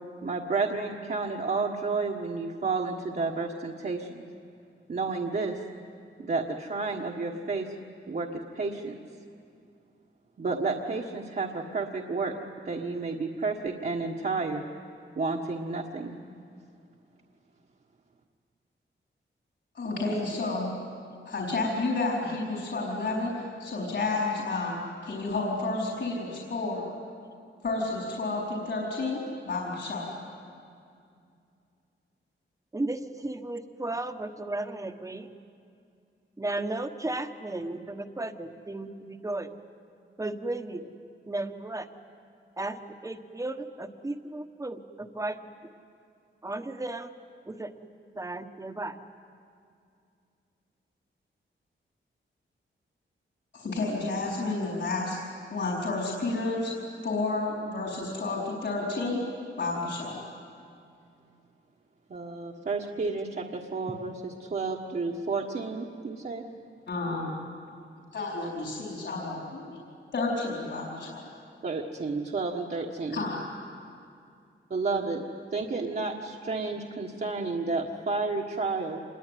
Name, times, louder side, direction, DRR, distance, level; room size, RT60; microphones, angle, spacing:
voice 1, 0.2-4.3 4.9-5.6 6.2-7.7 8.1-8.9 10.4-12.3 12.6-14.6 15.2-16.1 62.1-66.4 71.6-73.3 74.7-75.2 75.5-79.0, right 4 dB, 45° right, -2 dB, 1.5 m, -31 dB
voice 2, 19.7-20.7 21.2-24.8 25.0-26.8 27.6-30.1 53.5-55.2 55.5-56.7 57.0-59.2 59.6-60.2 66.9-67.3 68.1-69.8 70.1-71.3 73.1-73.4, left 3 dB, 60° left, -3 dB, 4.7 m, -31 dB
voice 3, 32.7-35.3 36.4-39.5 40.2-40.9 41.3-41.9 42.6-45.4 46.4-47.1 47.5-47.7 48.2-49.0, right 2 dB, 15° right, 7 dB, 1.2 m, -34 dB
27.0 x 21.5 x 9.4 m, 2.4 s
wide cardioid pair, 135°, 20 cm